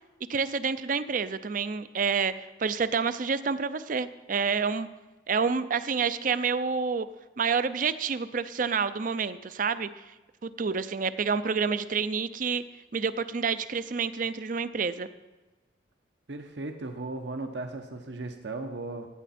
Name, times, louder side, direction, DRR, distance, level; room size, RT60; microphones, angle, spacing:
voice 1, 0.3-4.9 5.3-7.1 7.4-9.9 10.4-12.6 12.9-15.1, right 5 dB, 45° right, 13 dB, 0.5 m, -28 dB
voice 2, 16.3-19.1, right 2 dB, 70° right, 5 dB, 0.9 m, -36 dB
15.5 x 9.0 x 4.3 m, 1.1 s
head